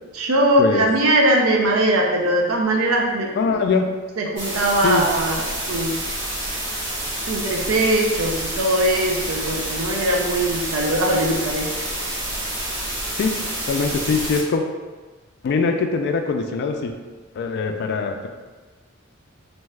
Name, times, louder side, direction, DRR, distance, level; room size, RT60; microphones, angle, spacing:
voice 1, 0.1-3.6 4.2-6.0 7.3-11.9, right 1 dB, 85° right, 0 dB, 0.5 m, -21 dB
voice 2, 3.4-3.9 4.8-5.1 13.2-13.4 13.7-14.6 15.4-16.9 17.3-18.3, left 4 dB, 55° left, 6 dB, 0.3 m, -22 dB
sound 1, 4.4-14.4, right 1 dB, 65° right, 1.0 m, -28 dB
2.6 x 2.3 x 3.2 m, 1.3 s
head